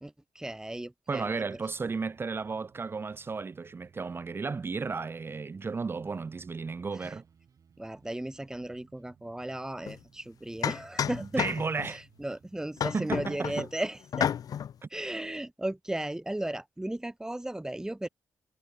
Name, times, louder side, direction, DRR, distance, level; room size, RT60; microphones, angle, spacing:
voice 1, 0.0-1.6 6.9-7.2 7.8-11.4 11.8-14.3 14.9-18.1, right 1 dB, 10° right, 1.2 m, -36 dB
voice 2, 1.1-7.2 11.4-12.0 12.9-13.7 14.8-14.9, right 4 dB, 35° right, 1.0 m, -34 dB
sound 1, 1.2-12.8, right 7 dB, 60° right, 4.8 m, -62 dB
sound 2, 9.9-10.0 10.6-11.9 12.8-13.7 14.1-14.7, left 9 dB, 70° left, 0.8 m, -31 dB
cardioid pair, 85°, 7 cm